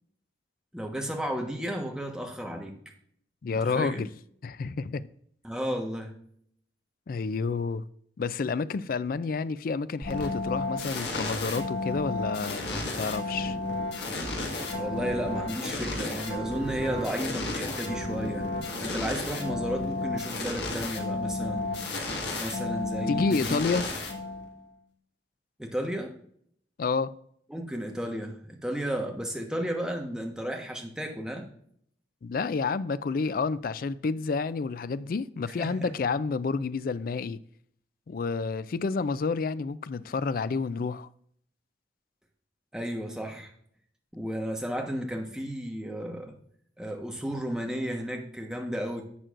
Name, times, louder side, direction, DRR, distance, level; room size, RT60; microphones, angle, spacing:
voice 1, 0.7-2.8 3.6-4.1 5.4-6.1 14.7-18.5 18.8-21.7 22.4-23.8 25.6-26.1 27.5-31.5 35.6-35.9 42.7-43.5 44.1-46.3 46.8-49.0, equal, 5° right, 1.2 m, -33 dB
voice 2, 3.4-4.1 4.4-5.1 7.1-7.8 8.2-13.6 23.1-23.8 26.8-27.1 32.2-37.4 38.1-41.1, left 4 dB, 50° left, 0.4 m, -29 dB
sound 1, 10.0-24.7, left 2 dB, 70° left, 1.7 m, -32 dB
11.0 x 7.6 x 2.5 m
head